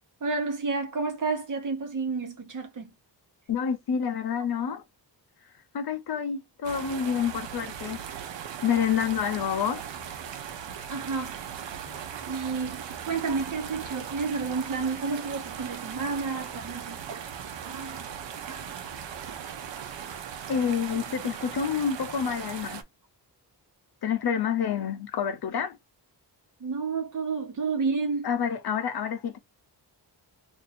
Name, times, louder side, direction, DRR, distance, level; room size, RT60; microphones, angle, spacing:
voice 1, 0.2-2.9 10.9-11.4 12.3-17.2 17.7-18.7 26.6-28.3, right 4 dB, 45° right, 1.1 m, -31 dB
voice 2, 3.5-4.8 5.7-8.0 8.6-9.8 11.9-12.0 20.5-22.8 24.0-25.8 28.2-29.4, left 7 dB, 60° left, 0.8 m, -28 dB
sound 1, 6.6-22.8, right 8 dB, 90° right, 0.8 m, -38 dB
2.7 x 2.6 x 4.1 m
wide cardioid pair, 140°, 43 cm